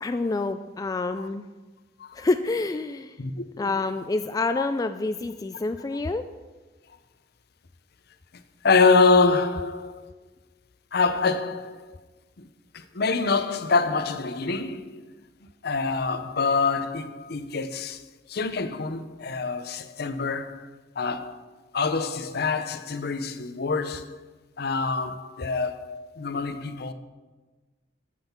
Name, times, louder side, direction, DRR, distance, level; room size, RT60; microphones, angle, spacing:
voice 1, 0.0-1.4 2.1-3.2 3.6-6.2, left 3 dB, 20° left, 0.3 m, -27 dB
voice 2, 3.2-3.7 4.6-4.7 8.6-10.1 10.9-12.0 12.4-12.5 12.7-15.1 15.6-18.0 18.3-20.7 21.0-21.4 21.7-24.2 24.6-26.9, left 4 dB, 60° left, 0.7 m, -25 dB
8.9 x 7.7 x 5.9 m
head